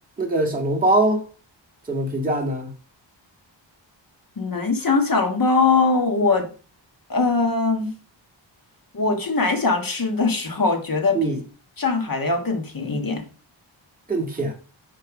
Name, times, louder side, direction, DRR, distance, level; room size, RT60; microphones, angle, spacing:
voice 1, 0.2-1.2 1.9-2.7 11.1-11.4 14.1-14.5, right 2 dB, 20° right, 1.9 m, -22 dB
voice 2, 4.4-6.5 7.1-7.9 8.9-11.4 11.8-13.2, left 3 dB, 45° left, 1.6 m, -21 dB
6.4 x 4.6 x 5.0 m
wide cardioid pair, 135°, 46 cm